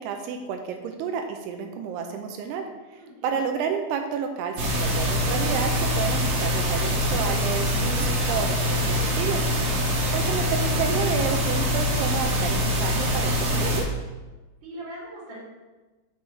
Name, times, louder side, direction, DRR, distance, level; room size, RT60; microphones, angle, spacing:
voice 1, 0.0-9.4 9.7-13.9, right 6 dB, 85° right, 5 dB, 2.6 m, -31 dB
voice 2, 2.9-3.5 14.6-15.4, right 1 dB, 35° right, -5 dB, 2.3 m, -41 dB
sound 1, 4.6-13.8, left 1 dB, 70° right, 1.4 m, -24 dB
7.5 x 4.7 x 4.5 m, 1.2 s
omnidirectional pair, 4.7 m